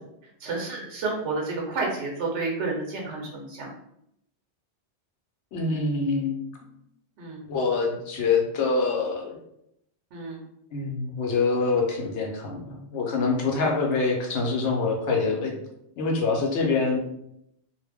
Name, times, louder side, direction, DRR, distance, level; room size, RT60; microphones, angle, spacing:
voice 1, 0.4-3.7 7.2-7.4 10.1-10.4, right 3 dB, 85° right, -1 dB, 1.0 m, -30 dB
voice 2, 5.5-6.4 7.5-9.4 10.7-15.5 16.0-17.0, left 4 dB, 85° left, 1 dB, 0.9 m, -25 dB
2.5 x 2.1 x 3.4 m, 0.78 s
omnidirectional pair, 1.2 m